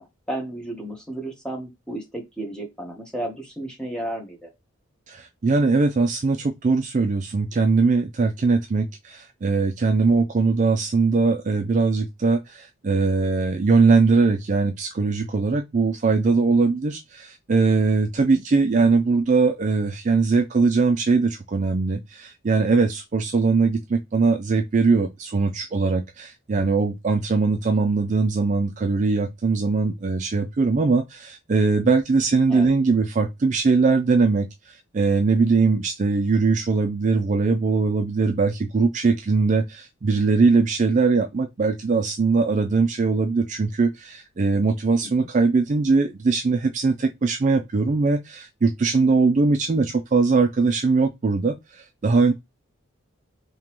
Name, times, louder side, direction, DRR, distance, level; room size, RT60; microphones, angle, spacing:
voice 1, 0.0-4.5 18.3-18.4 32.5-32.7 45.0-45.3, right 1 dB, 5° left, 1.0 m, -33 dB
voice 2, 5.1-52.3, right 4 dB, 35° right, 0.3 m, -21 dB
3.7 x 2.9 x 2.9 m
head